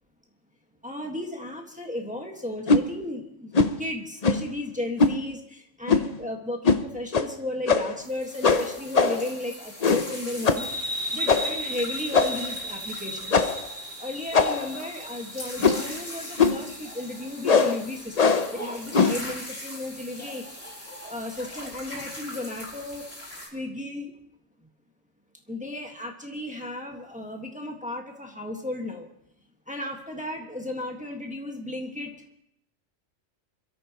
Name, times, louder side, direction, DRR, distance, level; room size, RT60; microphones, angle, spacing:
voice 1, 0.8-3.5 3.8-10.7 11.1-13.5 14.0-20.4 21.1-23.1 23.5-24.1 25.5-29.1 29.7-32.1, left 1 dB, 5° right, 1 dB, 1.6 m, -34 dB
sound 1, 2.7-2.9 3.5-3.8 4.2-4.5 5.0-5.2 5.9-6.2 6.6-6.8 7.1-7.3 7.7-8.0 8.4-9.3 9.8-10.1 10.5-10.7 11.3-11.6 12.1-12.5 13.3-13.7 14.3-14.8 15.6-15.9 16.4-16.7 17.4-17.8 18.2-18.5 18.9-19.2, left 4 dB, 40° left, 0.7 m, -21 dB
sound 2, 8.0-23.5, left 1 dB, 80° left, 5.8 m, -41 dB
sound 3, 10.6-17.8, right 1 dB, 50° right, 1.3 m, -36 dB
27.0 x 13.5 x 3.0 m, 0.75 s
omnidirectional pair, 1.3 m